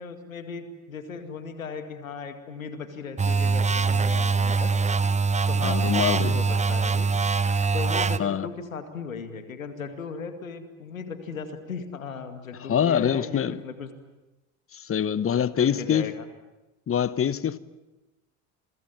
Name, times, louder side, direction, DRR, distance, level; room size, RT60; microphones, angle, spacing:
voice 1, 0.0-4.7 5.5-7.1 7.7-13.9 15.1-16.3, left 5 dB, 85° left, 2.3 m, -37 dB
sound 1, 3.2-8.2, right 4 dB, 15° right, 1.1 m, -23 dB
voice 2, 5.6-6.4 8.2-8.5 12.6-13.6 14.7-16.1 16.9-17.6, left 8 dB, 35° left, 1.3 m, -24 dB
28.5 x 23.0 x 7.5 m
figure-of-eight pair, 55°, 39 cm